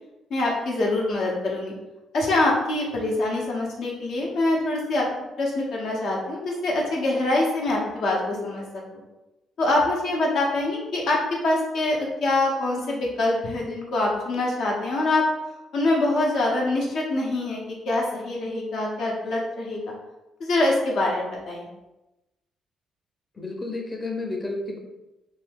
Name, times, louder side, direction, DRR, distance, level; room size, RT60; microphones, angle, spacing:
voice 1, 0.3-1.7 2.1-5.1 5.4-8.6 9.6-15.2 15.7-19.8 20.4-21.7, left 2 dB, 70° left, -2 dB, 0.9 m, -24 dB
voice 2, 23.4-24.8, left 2 dB, 25° left, 1 dB, 0.7 m, -31 dB
2.7 x 2.6 x 3.5 m, 0.99 s
cardioid pair, 90°, 0 cm